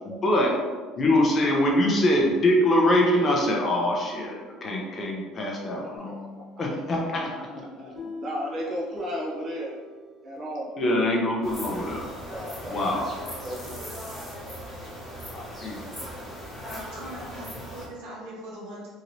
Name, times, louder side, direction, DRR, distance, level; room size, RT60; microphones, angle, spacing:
voice 1, 0.2-0.6 1.0-6.1 6.6-7.9 10.8-12.1 12.7-13.1 15.3-16.1, left 1 dB, 30° left, -1 dB, 0.6 m, -24 dB
sound 1, 6.0-10.7, left 3 dB, 50° left, 1.1 m, -43 dB
voice 2, 7.1-7.5 7.8-9.8 10.2-10.7 12.3-12.8 13.2-13.9, equal, 35° right, -4 dB, 0.5 m, -35 dB
sound 2, 11.4-17.9, equal, 5° left, 0.9 m, -38 dB
voice 3, 16.9-18.9, right 1 dB, 80° right, -5 dB, 1.1 m, -40 dB
2.9 x 2.8 x 2.6 m, 1.5 s
cardioid pair, 140°, 0 cm